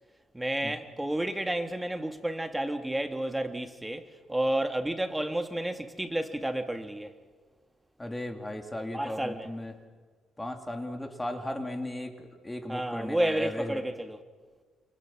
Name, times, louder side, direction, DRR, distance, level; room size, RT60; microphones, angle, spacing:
voice 1, 0.3-7.1 8.9-9.5 12.7-14.2, right 1 dB, 10° right, 1.7 m, -31 dB
voice 2, 8.0-9.7 10.4-13.8, left 1 dB, 10° left, 3.3 m, -36 dB
28.5 x 28.0 x 6.0 m
cardioid pair, 90°, 0 cm